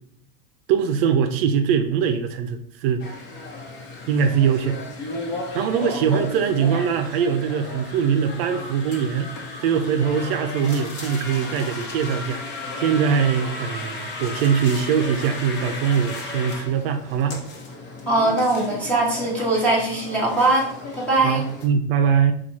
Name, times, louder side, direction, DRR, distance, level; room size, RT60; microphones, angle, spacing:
voice 1, 0.7-3.0 4.1-4.8 5.5-9.3 9.6-12.4 12.8-17.4 21.2-22.3, right 7 dB, 60° right, 7 dB, 0.5 m, -22 dB
sound 1, 3.0-21.7, left 2 dB, 45° left, 1.0 m, -34 dB
voice 2, 18.1-21.4, right 2 dB, 5° left, -5 dB, 0.7 m, -21 dB
4.1 x 2.3 x 4.5 m, 0.69 s
supercardioid pair, 180°, 34 cm